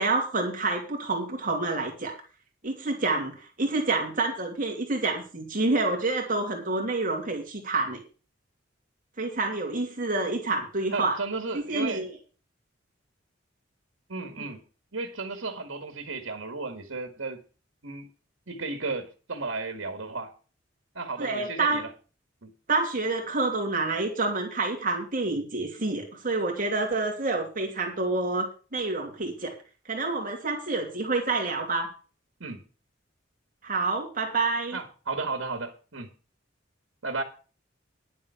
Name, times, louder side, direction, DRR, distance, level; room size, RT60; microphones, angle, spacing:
voice 1, 0.0-2.1 2.6-8.0 9.2-11.2 11.5-12.1 14.4-14.5 21.2-21.8 22.7-29.5 29.9-31.9 33.6-34.8, right 3 dB, 45° right, 2.6 m, -28 dB
voice 2, 10.9-12.0 14.1-14.6 14.9-17.4 17.8-18.1 18.5-20.3 20.9-21.9 22.4-22.5 32.4-32.6 34.7-36.1 37.0-37.2, right 3 dB, 80° right, 2.0 m, -34 dB
10.5 x 7.3 x 7.0 m
head